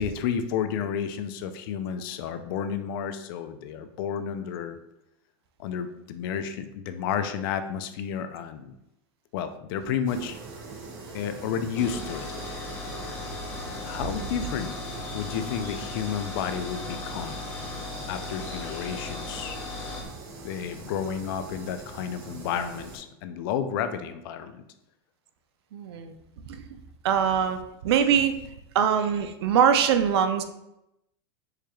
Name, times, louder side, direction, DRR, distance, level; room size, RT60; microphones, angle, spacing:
voice 1, 0.0-4.8 5.6-8.7 9.3-10.4 11.1-12.6 13.8-14.8 15.1-17.4 18.1-19.6 20.4-24.6, left 8 dB, 60° left, 9 dB, 0.4 m, -31 dB
sound 1, 10.1-23.0, right 3 dB, 50° right, 0.8 m, -42 dB
sound 2, 11.8-20.1, left 3 dB, 15° left, 0.8 m, -37 dB
voice 2, 25.7-26.1 26.5-26.6 27.0-28.4 28.7-30.4, right 8 dB, 90° right, 8 dB, 0.4 m, -23 dB
4.8 x 2.3 x 3.0 m, 0.86 s
supercardioid pair, 155°, 13 cm